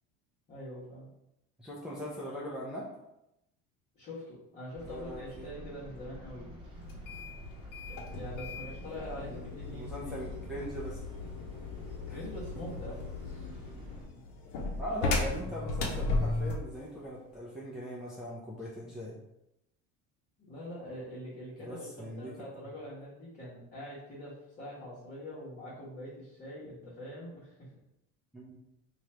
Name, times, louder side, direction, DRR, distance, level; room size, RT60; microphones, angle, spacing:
voice 1, 0.5-1.1 3.9-6.5 7.8-10.2 12.1-13.5 20.5-27.7, left 1 dB, 35° left, -10 dB, 1.5 m, -44 dB
voice 2, 1.6-2.8 4.8-5.5 9.2-11.0 14.8-19.1 21.6-22.7 28.3-28.6, equal, ahead, -8 dB, 0.6 m, -41 dB
sound 1, 4.8-14.0, right 1 dB, 15° right, 1.2 m, -48 dB
sound 2, 6.8-16.7, left 3 dB, 90° left, 0.9 m, -36 dB
3.0 x 2.6 x 4.4 m, 0.86 s
cardioid pair, 135°, 31 cm